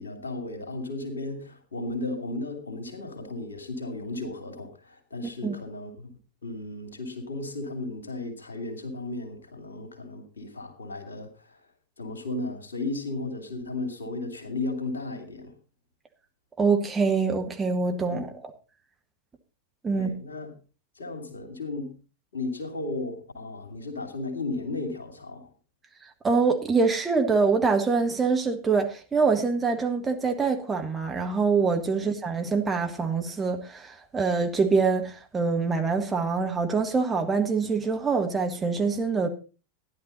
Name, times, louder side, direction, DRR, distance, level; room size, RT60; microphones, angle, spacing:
voice 1, 0.0-11.6 12.0-15.6 18.1-18.3 19.9-20.5 21.0-21.9 22.3-25.5 31.9-32.1, left 2 dB, 70° left, 2.7 m, -35 dB
voice 2, 16.6-18.3 19.8-20.1 26.2-39.3, right 4 dB, 15° right, 1.7 m, -25 dB
13.5 x 10.5 x 4.1 m
figure-of-eight pair, 90°, 0 cm